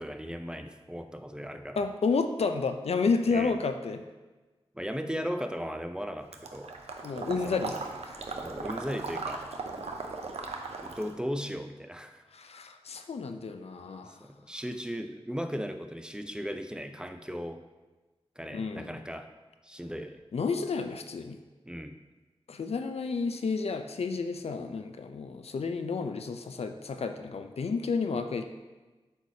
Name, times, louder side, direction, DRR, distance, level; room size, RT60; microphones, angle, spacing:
voice 1, 0.0-1.8 3.3-3.6 4.7-6.8 7.4-7.8 8.4-9.5 10.8-12.2 14.2-17.6 18.4-19.3 19.6-20.2 21.6-22.0, equal, 10° right, 7 dB, 0.5 m, -37 dB
voice 2, 1.8-4.0 7.0-7.7 8.0-8.2 12.3-14.2 18.5-18.9 20.3-21.4 22.5-28.5, left 4 dB, 75° left, 7 dB, 0.4 m, -31 dB
Water / Liquid, 6.3-11.2, right 3 dB, 90° right, 0.5 m, -38 dB
7.9 x 4.8 x 2.8 m, 1.2 s
cardioid pair, 45°, 11 cm